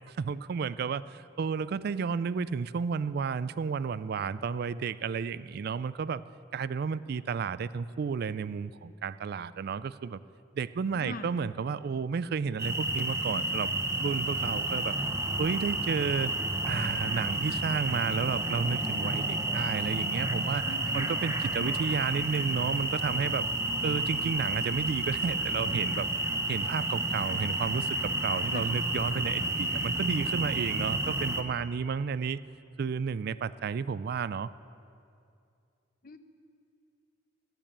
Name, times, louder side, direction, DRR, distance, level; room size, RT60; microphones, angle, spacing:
voice 1, 0.1-6.2 6.5-10.2 10.5-13.7 14.0-15.0 15.4-16.3 16.7-20.7 20.9-23.5 23.8-26.1 26.5-32.4 32.8-34.5, right 5 dB, 55° right, 17 dB, 0.3 m, -32 dB
voice 2, 11.0-11.3 20.7-21.7 28.5-28.7 36.0-36.2, left 2 dB, 50° left, 9 dB, 0.8 m, -41 dB
sound 1, 12.6-31.4, right 2 dB, 15° right, 0.8 m, -31 dB
13.5 x 10.5 x 8.6 m, 2.5 s
head